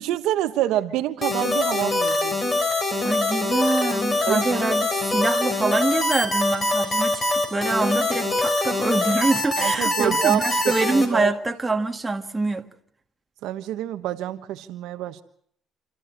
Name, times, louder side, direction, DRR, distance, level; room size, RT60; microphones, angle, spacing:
voice 1, 0.0-2.4 4.3-4.5 9.6-10.8 11.1-11.3 13.4-15.2, right 13 dB, 80° right, 1.2 m, -26 dB
sound 1, 1.2-11.1, left 2 dB, 30° left, 4.8 m, -23 dB
voice 2, 3.0-12.7, right 3 dB, 15° right, 1.9 m, -25 dB
28.0 x 14.0 x 8.7 m
cardioid pair, 110°, 0 cm